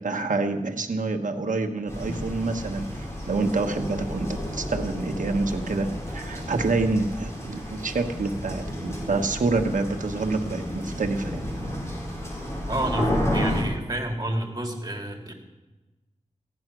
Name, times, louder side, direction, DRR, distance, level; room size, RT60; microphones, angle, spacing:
voice 1, 0.0-5.9 6.1-11.4, right 3 dB, 90° right, 4 dB, 1.2 m, -27 dB
sound 1, 1.9-13.6, equal, 20° left, 5.3 m, -31 dB
voice 2, 12.7-15.3, right 1 dB, 30° right, 2 dB, 3.0 m, -29 dB
15.5 x 10.5 x 6.1 m, 1.1 s
wide cardioid pair, 55°, 13 cm